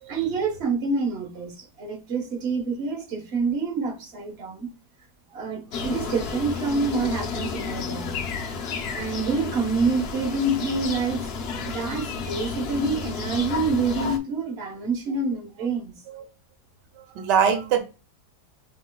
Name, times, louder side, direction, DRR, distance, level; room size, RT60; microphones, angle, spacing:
voice 1, 0.1-4.7 5.3-8.3 8.9-11.3 11.6-15.9, right 3 dB, 45° right, 1.2 m, -27 dB
sound 1, 5.7-14.2, left 5 dB, 65° left, 0.6 m, -31 dB
voice 2, 17.0-17.8, right 7 dB, 90° right, 1.3 m, -23 dB
5.6 x 3.1 x 2.2 m
omnidirectional pair, 1.8 m